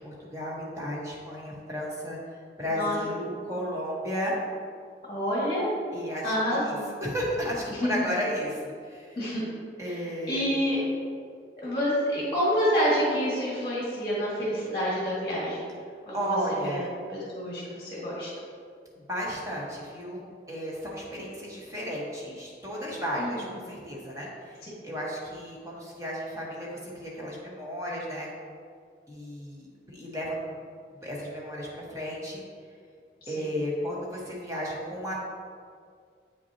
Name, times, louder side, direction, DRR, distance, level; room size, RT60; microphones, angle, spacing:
voice 1, 0.0-2.2 2.6-4.4 5.9-9.2 9.8-10.5 16.1-16.9 19.1-28.3 29.1-30.5 31.0-32.4 33.3-35.3, equal, 20° right, -5 dB, 1.2 m, -33 dB
voice 2, 2.7-3.0 3.3-3.5 5.1-5.7 6.1-6.9 7.7-7.9 9.2-9.5 9.9-10.8 11.6-15.7 16.1-16.4 16.6-16.8 17.1-18.3 23.2-23.5 33.2-33.5, equal, 25° left, -7 dB, 1.8 m, -28 dB
8.1 x 5.9 x 2.8 m, 2.1 s
head